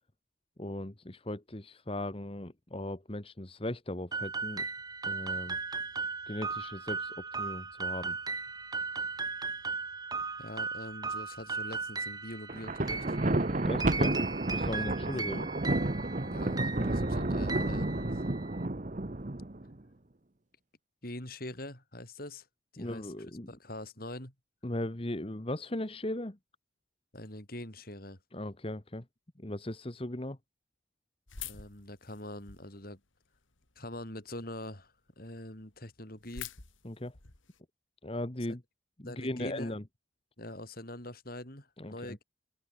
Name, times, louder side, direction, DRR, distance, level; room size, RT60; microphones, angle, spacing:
voice 1, 0.6-4.7 5.1-5.6 6.3-8.2 13.6-14.2 14.5-15.5 16.8-16.9 22.8-23.5 24.6-26.4 28.3-29.0 29.4-30.4 36.8-37.1 38.0-38.6 39.0-39.8 41.8-42.2, left 1 dB, 30° left, 1.4 m, -38 dB
sound 1, 4.1-18.6, right 4 dB, 20° right, 1.6 m, -37 dB
voice 2, 10.4-13.2 14.7-14.9 16.2-18.2 21.0-22.5 22.7-23.1 23.5-24.3 27.1-28.2 31.4-33.0 33.8-36.5 39.1-39.7 40.4-42.2, left 1 dB, 45° left, 5.3 m, -44 dB
Thunder, 12.5-19.7, right 2 dB, 40° right, 1.0 m, -31 dB
sound 2, 31.3-32.8 33.3-34.0 34.5-34.6 34.8-34.9 35.3-35.4 35.5-37.6, left 9 dB, 80° left, 2.4 m, -46 dB
head